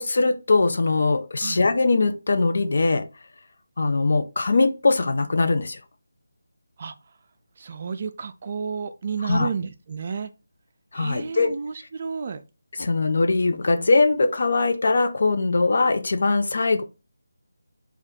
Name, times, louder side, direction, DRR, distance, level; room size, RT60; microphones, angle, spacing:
voice 1, 0.0-3.1 3.8-5.8 9.2-9.5 10.9-11.5 12.8-16.8, left 3 dB, 55° left, 0.4 m, -21 dB
voice 2, 7.6-10.3 10.9-12.4, right 6 dB, 40° right, 0.3 m, -31 dB
2.7 x 2.3 x 3.5 m
figure-of-eight pair, 165°, 0 cm